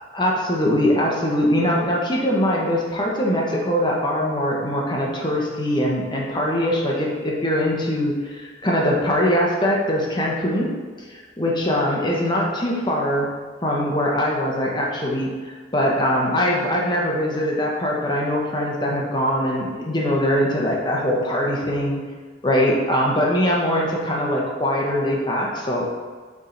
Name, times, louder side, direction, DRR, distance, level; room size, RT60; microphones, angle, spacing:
voice 1, 0.1-10.7 11.1-13.3 13.6-22.0 22.4-25.8, equal, 25° left, -3 dB, 1.1 m, -22 dB
7.2 x 3.7 x 4.0 m, 1.5 s
head